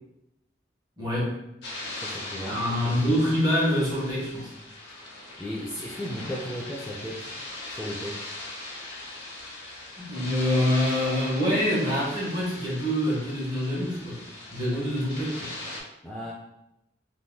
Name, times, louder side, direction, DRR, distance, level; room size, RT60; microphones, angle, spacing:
voice 1, 1.0-1.4 2.4-4.5 10.0-14.2 14.5-15.5, equal, 25° right, -6 dB, 1.2 m, -25 dB
sound 1, 1.6-15.8, left 2 dB, 75° left, 0.9 m, -39 dB
voice 2, 1.9-2.9 5.4-8.2 16.0-16.3, equal, 5° left, -6 dB, 0.3 m, -36 dB
3.6 x 2.8 x 2.2 m, 0.86 s
head